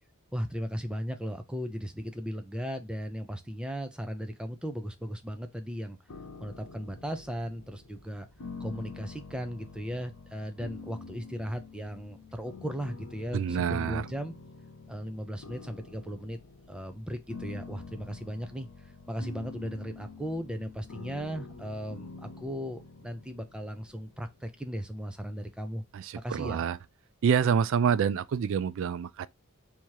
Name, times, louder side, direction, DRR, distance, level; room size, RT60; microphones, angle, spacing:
voice 1, 0.3-6.0 6.4-8.3 8.6-14.3 14.9-16.4 16.7-25.8 26.1-26.6, equal, 5° right, 0.5 m, -37 dB
sound 1, 6.1-25.0, left 3 dB, 85° left, 0.8 m, -47 dB
voice 2, 13.3-14.1 25.9-26.8 27.2-29.3, right 7 dB, 60° right, 0.3 m, -27 dB
3.5 x 2.9 x 4.7 m
head